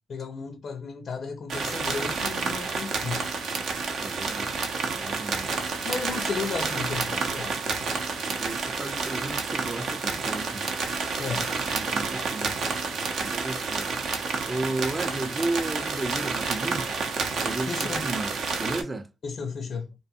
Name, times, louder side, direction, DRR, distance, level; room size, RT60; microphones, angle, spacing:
voice 1, 0.1-3.3 5.8-8.1 11.2-11.5 17.6-18.1 19.2-19.9, left 5 dB, 50° left, 0.4 m, -34 dB
sound 1, 1.5-18.8, right 4 dB, 65° right, 0.6 m, -29 dB
voice 2, 4.0-5.5 8.2-10.7 11.3-11.4 11.7-12.7 13.2-13.9 14.5-16.9 17.4-19.1, right 2 dB, 20° right, 0.4 m, -34 dB
2.5 x 2.2 x 2.7 m
cardioid pair, 90°, 0 cm